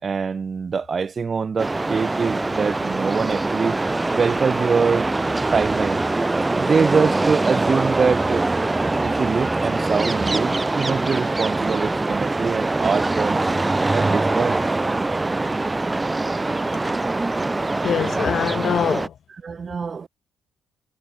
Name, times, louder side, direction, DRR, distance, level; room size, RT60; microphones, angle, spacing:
voice 1, 0.0-3.8 4.1-5.1 5.5-6.0 6.6-8.5 9.0-13.4 13.9-14.6 19.4-20.1, right 5 dB, 40° right, 3.4 m, -24 dB
sound 1, 1.6-19.1, right 2 dB, 20° right, 2.6 m, -23 dB
voice 2, 17.8-19.1, left 9 dB, 60° left, 0.6 m, -23 dB
cardioid pair, 90°, 0 cm